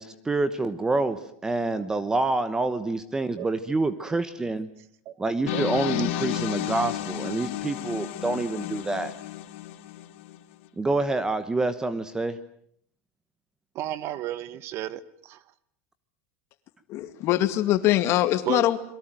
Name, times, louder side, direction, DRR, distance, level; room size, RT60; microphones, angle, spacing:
voice 1, 0.0-4.7 5.2-9.1 10.8-12.4, right 2 dB, 10° right, 13 dB, 1.1 m, -27 dB
sound 1, 5.5-10.4, left 14 dB, 65° left, 2.5 m, -32 dB
voice 2, 13.7-15.4 18.5-18.6, right 13 dB, 35° right, 17 dB, 1.2 m, -33 dB
voice 3, 16.9-18.8, left 13 dB, 40° left, 11 dB, 2.2 m, -23 dB
28.0 x 22.5 x 9.1 m, 0.64 s
supercardioid pair, 165°, 7 cm